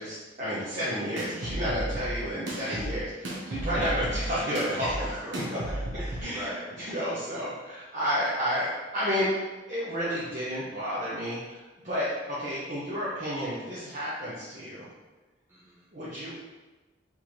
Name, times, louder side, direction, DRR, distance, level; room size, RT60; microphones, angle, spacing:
voice 1, 0.0-4.9 5.3-5.4 6.2-6.5 6.8-14.9 15.9-16.4, equal, 40° right, -9 dB, 0.9 m, -31 dB
sound 1, 1.2-6.2, right 1 dB, 70° right, 1.1 m, -34 dB
voice 2, 2.6-2.9 3.7-4.0 4.8-6.9 12.0-12.2 15.5-15.9, equal, 15° right, -9 dB, 0.6 m, -40 dB
4.5 x 3.6 x 3.1 m, 1.2 s
head